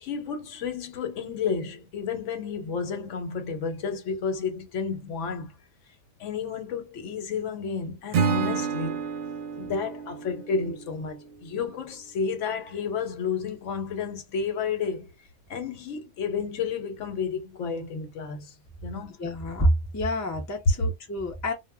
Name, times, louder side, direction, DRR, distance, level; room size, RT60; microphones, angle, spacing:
voice 1, 0.0-5.5 6.2-9.0 9.6-15.1 15.5-18.5 18.8-19.2, left 5 dB, 70° left, 1.0 m, -31 dB
Acoustic guitar / Strum, 8.1-11.3, right 5 dB, 60° right, 0.7 m, -29 dB
voice 2, 19.2-21.5, equal, 25° left, 0.4 m, -27 dB
2.1 x 2.1 x 3.4 m
omnidirectional pair, 1.3 m